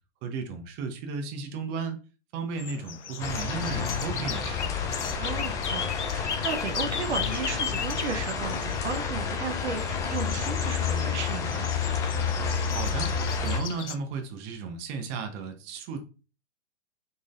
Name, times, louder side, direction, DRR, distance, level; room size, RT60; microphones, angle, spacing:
voice 1, 0.2-2.0 2.3-4.9 12.7-13.1 13.4-16.0, right 4 dB, 30° right, 0.9 m, -34 dB
sound 1, 2.6-14.0, left 7 dB, 85° left, 0.5 m, -37 dB
sound 2, 3.2-13.6, left 6 dB, 10° left, 0.3 m, -30 dB
voice 2, 5.2-11.7, right 5 dB, 75° right, 0.9 m, -35 dB
4.8 x 4.0 x 2.5 m
figure-of-eight pair, 105°, 34 cm